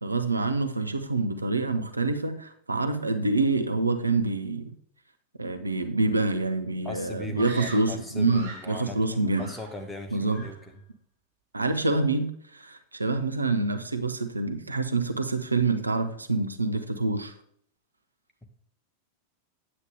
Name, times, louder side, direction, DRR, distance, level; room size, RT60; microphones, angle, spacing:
voice 1, 0.0-4.7 5.4-9.5 10.1-10.4 11.5-17.3, right 3 dB, 80° right, 9 dB, 0.7 m, -26 dB
voice 2, 6.8-10.8, left 1 dB, 10° left, 3 dB, 1.4 m, -39 dB
Screaming, 7.4-8.8 9.3-10.0 10.2-10.7, right 3 dB, 60° right, 3.6 m, -42 dB
8.7 x 8.1 x 3.6 m, 0.64 s
figure-of-eight pair, 90°, 0 cm